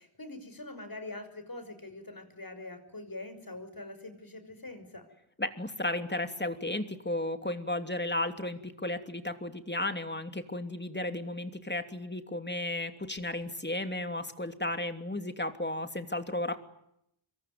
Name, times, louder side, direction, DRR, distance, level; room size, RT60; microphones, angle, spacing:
voice 1, 0.0-5.1, left 2 dB, 45° left, 9 dB, 5.8 m, -44 dB
voice 2, 5.4-16.6, left 1 dB, 20° left, 8 dB, 2.9 m, -34 dB
26.5 x 22.5 x 9.6 m, 0.77 s
wide cardioid pair, 60°, 47 cm